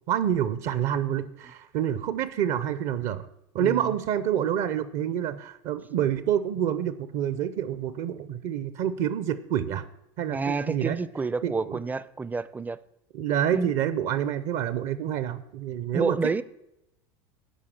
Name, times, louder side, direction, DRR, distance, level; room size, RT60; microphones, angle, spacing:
voice 1, 0.1-3.3 3.5-9.8 10.2-11.0 11.4-11.8 13.1-16.2, right 10 dB, 60° right, 0.6 m, -27 dB
voice 2, 3.6-3.9 10.3-12.8 13.5-13.7 15.9-16.4, right 4 dB, 10° right, 0.4 m, -29 dB
10.5 x 4.8 x 7.7 m
supercardioid pair, 105°, 15 cm